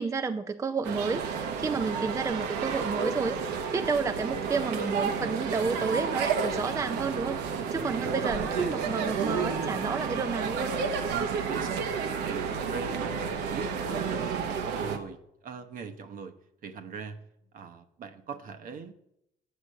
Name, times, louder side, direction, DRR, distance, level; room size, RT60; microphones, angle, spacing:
voice 1, 0.0-3.4 3.7-7.4 7.7-10.8, right 4 dB, 20° right, 9 dB, 0.5 m, -31 dB
sound 1, 0.8-15.0, right 6 dB, 85° right, 1.1 m, -31 dB
voice 2, 7.7-8.1 11.1-11.9 12.2-15.2 15.4-16.4 16.6-17.2 17.5-18.9, right 6 dB, 55° right, 8 dB, 1.0 m, -41 dB
8.4 x 5.8 x 7.6 m, 0.80 s
cardioid pair, 110°, 17 cm